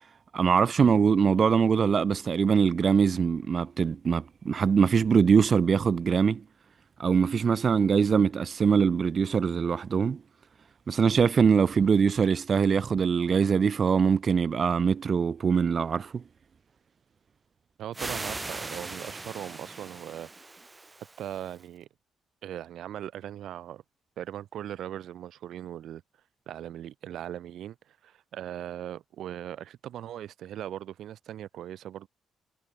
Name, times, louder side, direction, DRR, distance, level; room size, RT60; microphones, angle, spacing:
voice 1, 0.3-6.4 7.0-10.2 10.9-16.2, right 6 dB, 45° right, 1.7 m, -23 dB
voice 2, 17.8-20.3 21.2-21.9 22.4-23.8 24.2-26.0 26.5-32.1, right 11 dB, 75° right, 2.9 m, -39 dB
sound 1, 17.9-21.6, right 3 dB, 20° right, 1.2 m, -39 dB
cardioid pair, 90°, 0 cm